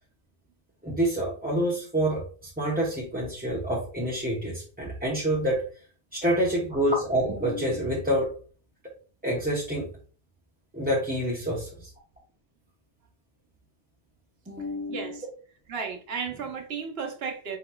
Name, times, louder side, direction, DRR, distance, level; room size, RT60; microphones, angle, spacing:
voice 1, 0.8-5.6 6.1-8.3 9.2-9.8 10.7-11.9 14.5-15.2, right 1 dB, 10° right, -4 dB, 0.7 m, -27 dB
voice 2, 14.9-15.2 15.7-17.6, right 5 dB, 75° right, 5 dB, 1.1 m, -34 dB
4.7 x 4.2 x 2.2 m, 0.41 s
omnidirectional pair, 1.0 m